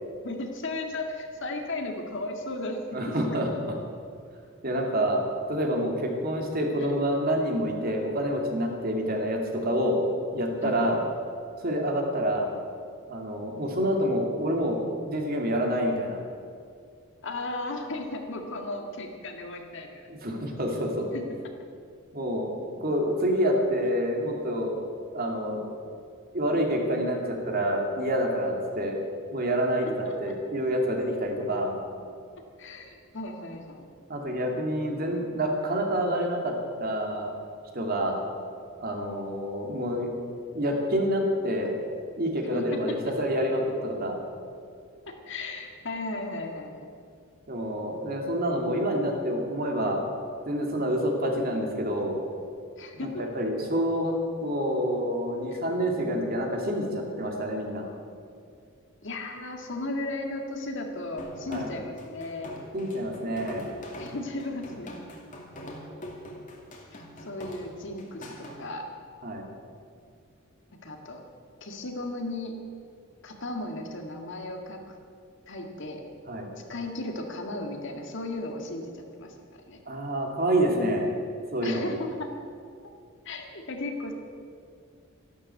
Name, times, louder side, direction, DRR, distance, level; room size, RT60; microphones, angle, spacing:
voice 1, 0.2-3.0 6.8-6.9 10.6-10.9 11.7-11.8 17.2-19.9 21.1-21.2 30.0-30.1 32.6-33.9 42.5-42.8 45.1-46.9 52.8-53.2 55.5-55.6 59.0-62.5 64.0-64.9 66.9-68.9 70.8-71.2 71.6-72.5 73.2-75.0 75.5-76.0 76.7-79.8 81.6-82.3 83.3-84.1, left 2 dB, 60° left, 3 dB, 1.9 m, -35 dB
voice 2, 2.9-3.7 4.6-5.2 5.5-10.0 10.3-11.0 11.6-12.5 13.1-14.8 15.1-16.2 20.1-21.1 22.1-24.7 25.1-25.7 26.3-29.0 29.3-29.9 30.2-31.8 34.1-37.3 37.7-38.2 38.8-40.1 40.5-41.7 42.2-44.2 47.5-50.0 50.5-52.2 53.2-54.1 54.4-57.9 61.5-61.7 62.7-63.7 69.2-69.5 76.3-76.5 79.9-81.1 81.5-81.9, equal, 45° right, 1 dB, 2.5 m, -27 dB
sound 1, 61.2-68.6, equal, 35° left, 2.4 m, -42 dB
13.5 x 12.0 x 8.3 m, 2.3 s
head